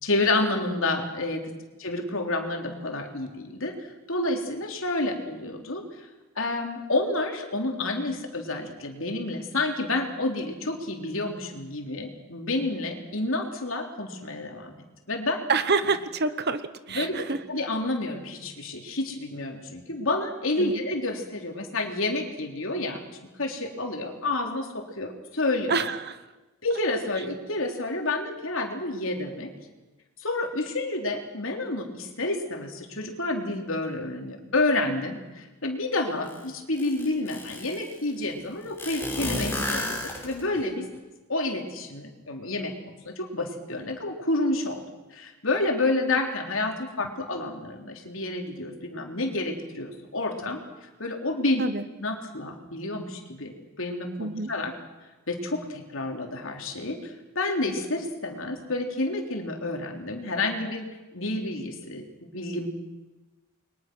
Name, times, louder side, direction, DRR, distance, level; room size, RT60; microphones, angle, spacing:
voice 1, 0.0-1.5 1.8-6.1 6.4-14.8 15.1-15.4 16.9-23.0 23.4-25.8 26.6-29.5 30.2-40.9 41.3-44.8 45.1-51.6 52.0-54.7 55.3-62.8, left 2 dB, 65° left, 3 dB, 3.6 m, -29 dB
voice 2, 15.5-17.4 20.6-20.8 25.7-26.2 51.6-51.8 54.2-54.5, right 4 dB, 50° right, 12 dB, 1.1 m, -27 dB
sound 1, 36.3-36.4 36.8-37.9 38.8-40.6, left 1 dB, 10° left, 5.6 m, -31 dB
29.0 x 23.0 x 6.3 m, 1.1 s
head